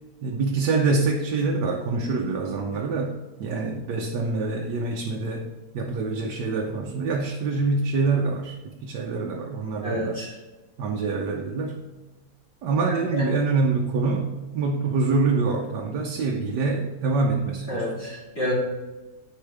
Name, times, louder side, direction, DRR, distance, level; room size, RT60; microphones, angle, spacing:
voice 1, 0.2-5.4 5.7-10.2 10.8-11.8 12.6-17.8, right 3 dB, 85° right, 1 dB, 1.4 m, -25 dB
voice 2, 9.8-10.3 12.9-13.3 17.7-18.5, equal, 35° left, -7 dB, 2.4 m, -29 dB
10.0 x 5.4 x 3.4 m, 1.1 s
omnidirectional pair, 1.8 m